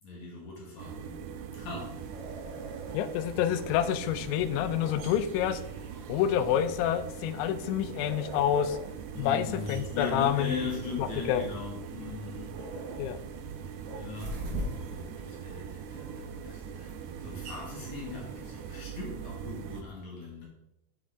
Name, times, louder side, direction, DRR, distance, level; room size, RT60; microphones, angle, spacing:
voice 1, 0.0-1.2 1.5-2.0 9.1-12.6 13.9-14.5 14.9-20.5, left 4 dB, 60° left, -3 dB, 2.1 m, -39 dB
sound 1, 0.8-19.8, right 7 dB, 85° right, 2.4 m, -42 dB
sound 2, 1.8-18.8, right 1 dB, 70° right, 3.1 m, -45 dB
voice 2, 2.9-5.6 6.1-8.8 9.2-10.5 11.0-11.4 13.0-13.2, left 10 dB, 90° left, 11 dB, 2.9 m, -28 dB
7.6 x 7.4 x 3.5 m, 0.84 s
omnidirectional pair, 5.2 m